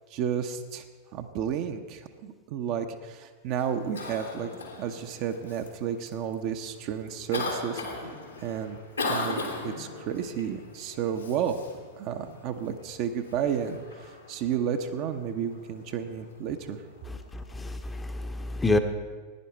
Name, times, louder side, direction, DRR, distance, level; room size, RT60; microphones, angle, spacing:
voice 1, 0.1-0.8 1.1-4.5 4.8-7.8 8.4-8.8 9.1-11.6 12.0-16.8, right 8 dB, 40° right, 6 dB, 0.8 m, -32 dB
Cough, 3.5-18.0, left 2 dB, 80° left, 2.1 m, -39 dB
voice 2, 17.3-18.8, left 2 dB, 10° left, 7 dB, 0.8 m, -28 dB
15.5 x 10.0 x 4.4 m, 1.5 s
figure-of-eight pair, 90°, 0 cm